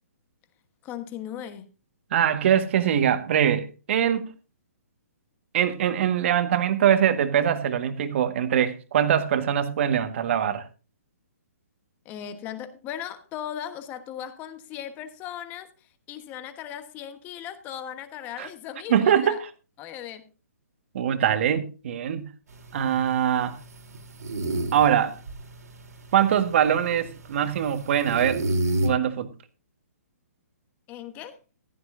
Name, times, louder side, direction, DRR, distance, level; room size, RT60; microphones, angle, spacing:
voice 1, 0.8-1.7 12.0-19.4 19.8-20.3 30.9-31.4, left 10 dB, 20° left, 1.3 m, -38 dB
voice 2, 2.1-4.3 5.5-10.7 18.4-18.5 18.9-19.5 20.9-22.3 22.7-23.6 24.7-25.2 26.1-28.4 28.8-29.3, right 9 dB, 50° right, 1.7 m, -23 dB
sound 1, 22.5-28.9, right 1 dB, 85° right, 3.7 m, -32 dB
15.0 x 12.5 x 2.7 m
hypercardioid pair, 155°, 9 cm